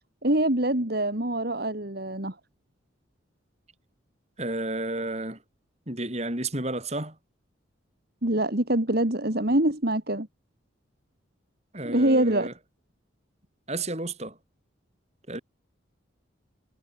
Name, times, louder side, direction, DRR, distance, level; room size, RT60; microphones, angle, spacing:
voice 1, 0.2-2.3 8.2-10.3 11.8-12.5, right 1 dB, 50° right, 2.5 m, -24 dB
voice 2, 4.4-5.4 5.9-7.2 11.7-12.5 13.7-14.4 15.3-15.4, right 2 dB, 35° right, 4.7 m, -31 dB
head